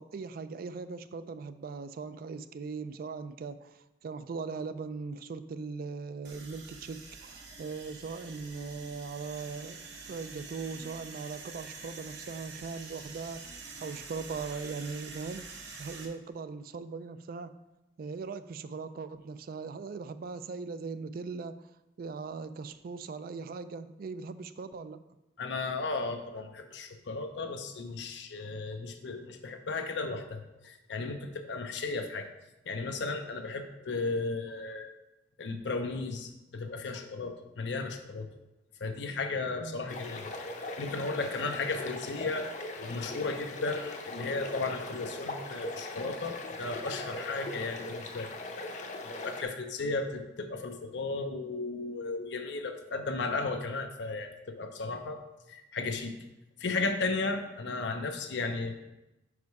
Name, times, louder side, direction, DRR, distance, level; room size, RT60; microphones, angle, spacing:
voice 1, 0.0-9.8 10.1-13.5 13.8-17.5 18.0-21.6 22.0-25.0 39.6-39.8, right 4 dB, 55° right, 12 dB, 0.3 m, -39 dB
sound 1, 6.2-16.1, right 4 dB, 70° right, 1.0 m, -46 dB
voice 2, 25.4-32.3 32.7-34.9 35.4-38.3 38.8-40.3 40.8-42.5 42.8-48.3 49.2-55.2 55.5-56.2 56.6-58.7, left 3 dB, 85° left, 5 dB, 0.6 m, -35 dB
sound 2, 39.9-49.4, left 2 dB, 45° left, 0.7 m, -40 dB
5.4 x 4.8 x 4.7 m, 0.96 s
head